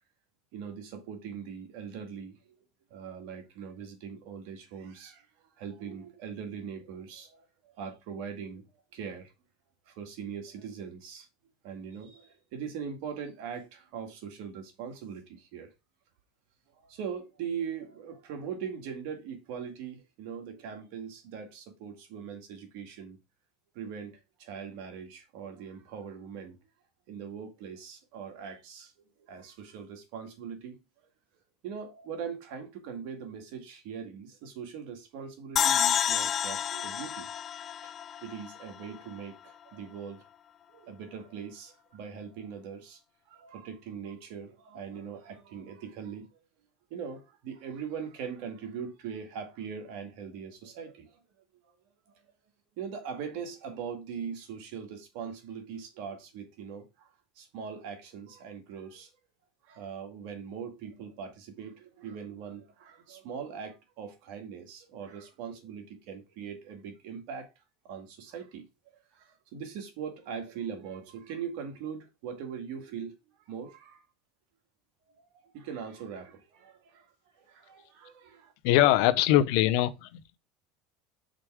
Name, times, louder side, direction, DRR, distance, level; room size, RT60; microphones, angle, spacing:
voice 1, 0.5-2.6 2.9-5.3 5.6-8.7 8.9-9.3 9.9-11.3 11.6-15.7 16.7-23.2 23.7-26.6 27.1-28.9 29.2-30.8 31.6-37.3 37.6-37.9 38.2-40.2 40.7-43.0 43.3-46.3 46.9-51.2 52.8-57.1 57.4-59.1 59.6-67.5 67.8-68.7 69.1-73.2 73.5-74.0 75.3-77.1 77.4-78.5, right 7 dB, 70° right, 2.0 m, -41 dB
sound 1, 35.6-38.9, left 9 dB, 35° left, 0.4 m, -29 dB
voice 2, 78.6-80.4, left 13 dB, 70° left, 0.7 m, -23 dB
5.1 x 4.4 x 4.9 m
supercardioid pair, 110°, 0 cm